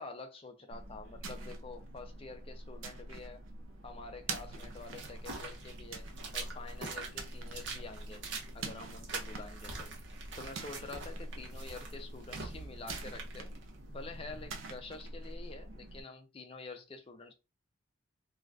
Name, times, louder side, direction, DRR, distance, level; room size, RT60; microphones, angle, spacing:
voice 1, 0.0-3.4 3.8-8.2 8.5-9.9 10.4-13.5 13.9-17.3, left 3 dB, 30° left, 0.5 m, -47 dB
sound 1, 0.7-16.0, right 2 dB, 85° right, 0.5 m, -45 dB
sound 2, 4.6-14.6, right 3 dB, 60° right, 0.8 m, -46 dB
2.5 x 2.3 x 3.3 m
head